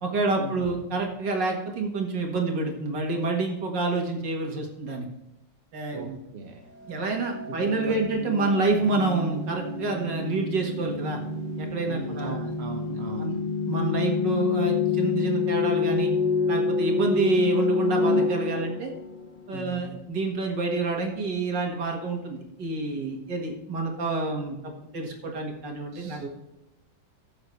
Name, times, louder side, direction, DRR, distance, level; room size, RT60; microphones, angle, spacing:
voice 1, 0.0-5.1 5.7-6.2 6.9-11.2 11.6-12.4 12.9-13.4 13.7-16.1 16.5-18.9 19.5-26.2, right 3 dB, 70° right, 2 dB, 2.4 m, -28 dB
voice 2, 5.9-6.7 7.5-7.6 7.9-8.0 11.9-13.3 19.5-20.0 25.9-26.3, right 2 dB, 45° right, 2 dB, 1.0 m, -38 dB
sound 1, 6.8-19.5, left 4 dB, 75° left, 2.6 m, -28 dB
15.0 x 7.3 x 3.2 m, 0.91 s
omnidirectional pair, 2.0 m